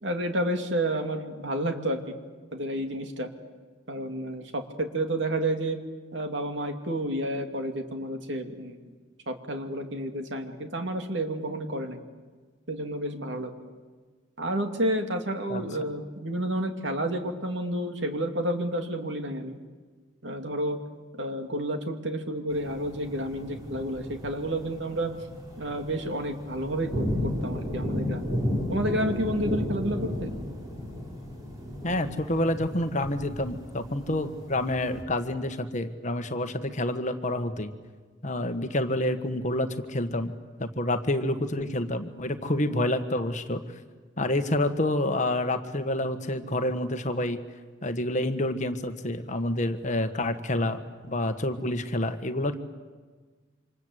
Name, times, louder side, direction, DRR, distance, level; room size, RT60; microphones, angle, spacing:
voice 1, 0.0-2.2 2.5-3.3 3.9-5.8 6.1-8.8 9.3-12.0 12.7-13.5 14.4-19.6 20.2-20.8 21.2-25.2 25.6-28.3 28.7-30.3, right 1 dB, 65° right, 5 dB, 2.7 m, -30 dB
sound 1, 22.5-35.0, left 1 dB, 20° right, 5.2 m, -34 dB
voice 2, 31.8-37.7 38.2-40.3 40.6-43.6 44.2-47.4 47.8-52.6, left 1 dB, 40° left, 8 dB, 1.5 m, -28 dB
27.5 x 26.0 x 8.1 m, 1.4 s
head